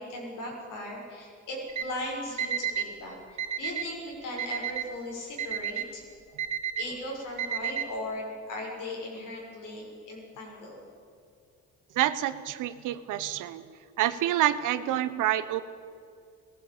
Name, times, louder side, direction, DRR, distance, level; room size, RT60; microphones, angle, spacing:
voice 1, 0.0-6.0 6.8-10.8, left 1 dB, 85° left, -2 dB, 6.3 m, -38 dB
Alarm, 1.7-1.8 2.4-2.9 3.4-3.9 4.4-4.9 5.4-5.9 6.4-6.9 7.4-7.9, right 8 dB, 70° right, 2.0 m, -31 dB
voice 2, 11.9-13.6 14.0-15.6, right 12 dB, 85° right, 13 dB, 1.1 m, -27 dB
18.5 x 16.0 x 8.8 m, 2.4 s
cardioid pair, 90°, 30 cm